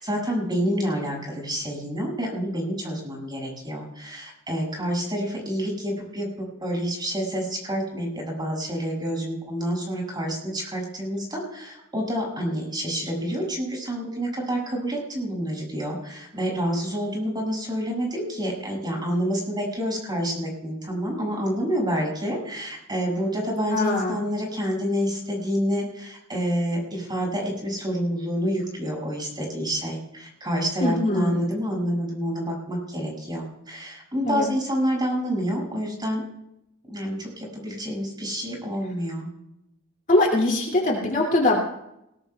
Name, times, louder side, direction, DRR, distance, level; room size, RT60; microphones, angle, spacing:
voice 1, 0.0-36.2 36.9-39.3, equal, 20° right, -1 dB, 6.4 m, -28 dB
voice 2, 23.7-24.1 30.8-31.3 34.3-34.4 40.1-41.6, left 2 dB, 40° left, -1 dB, 2.5 m, -22 dB
20.0 x 19.5 x 2.3 m, 0.83 s
head